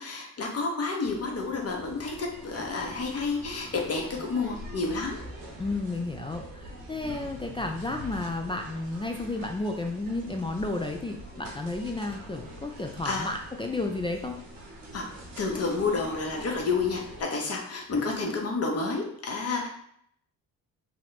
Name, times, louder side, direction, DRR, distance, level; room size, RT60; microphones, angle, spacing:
voice 1, 0.0-5.2 13.0-13.3 14.9-15.1 15.4-19.7, left 4 dB, 40° left, 1 dB, 0.9 m, -30 dB
sound 1, 1.0-17.2, equal, 75° right, 1.1 m, -44 dB
voice 2, 5.6-14.4, left 2 dB, 15° left, 2 dB, 0.3 m, -32 dB
2.9 x 2.1 x 4.0 m, 0.68 s
hypercardioid pair, 50°, 40 cm